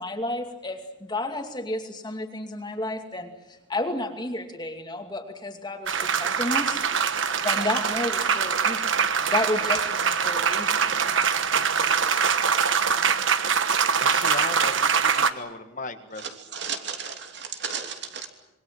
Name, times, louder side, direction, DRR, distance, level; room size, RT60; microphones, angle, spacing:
voice 1, 0.0-6.8 7.4-9.0 9.3-11.0, left 2 dB, 20° left, 5 dB, 2.4 m, -31 dB
sound 1, 5.9-15.3, right 6 dB, 75° right, 1.3 m, -23 dB
voice 2, 14.0-16.2, left 3 dB, 40° left, 7 dB, 1.6 m, -36 dB
voice 3, 16.2-18.3, right 6 dB, 55° right, 4 dB, 3.0 m, -36 dB
26.5 x 22.0 x 7.7 m, 0.97 s
head